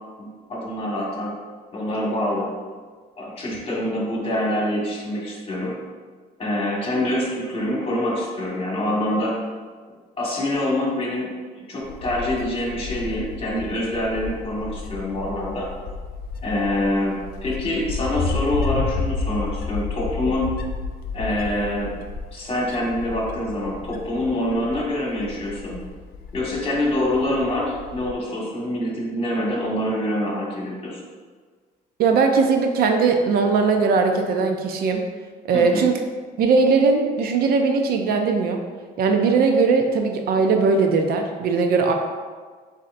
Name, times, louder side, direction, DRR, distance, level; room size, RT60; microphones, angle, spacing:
voice 1, 0.2-1.3 1.7-2.5 3.2-5.7 6.4-9.4 10.2-15.7 16.4-20.5 21.1-21.9 22.3-25.8 26.3-31.0 35.5-35.9, left 1 dB, 35° left, -4 dB, 1.4 m, -25 dB
Wind, 11.8-28.1, left 4 dB, 65° left, 0.5 m, -32 dB
voice 2, 32.0-35.0 35.5-36.0 36.4-38.6 39.0-41.9, right 4 dB, 65° right, 4 dB, 0.5 m, -19 dB
7.3 x 2.7 x 2.5 m, 1.5 s
cardioid pair, 110°, 17 cm